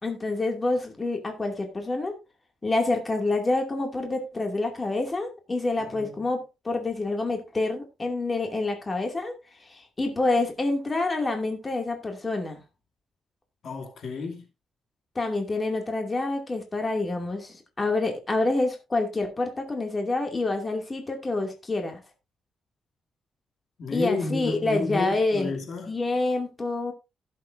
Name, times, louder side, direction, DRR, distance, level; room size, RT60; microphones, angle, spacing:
voice 1, 0.0-2.1 2.6-9.3 9.7-12.6 15.2-22.0 23.9-25.6 25.9-26.9, left 2 dB, 25° left, 2.4 m, -27 dB
voice 2, 5.8-6.2 13.6-14.4 23.8-25.9, left 3 dB, 65° left, 2.7 m, -31 dB
16.5 x 7.6 x 2.6 m
cardioid pair, 100°, 0 cm